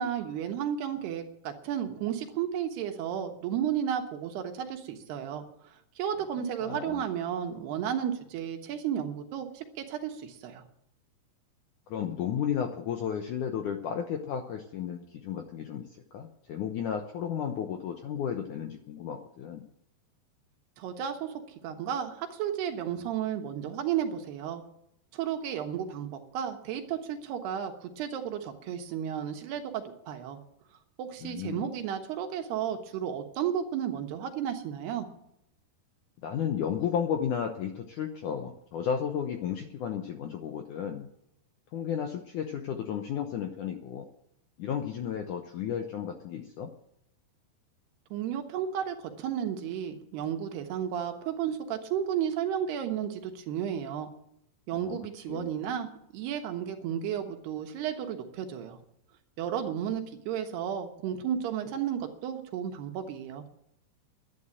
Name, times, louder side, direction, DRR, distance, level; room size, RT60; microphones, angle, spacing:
voice 1, 0.0-5.5 6.0-10.6 20.8-21.3 21.6-24.6 25.1-30.4 31.0-35.1 48.1-54.1 54.7-58.8 59.4-63.4, right 9 dB, 75° right, 5 dB, 3.3 m, -33 dB
voice 2, 6.6-7.0 11.9-19.7 31.2-31.7 36.2-41.1 41.7-44.1 44.6-46.7 54.7-55.0 55.3-55.5, left 8 dB, 75° left, 5 dB, 1.9 m, -33 dB
11.5 x 9.8 x 8.9 m, 0.78 s
omnidirectional pair, 4.8 m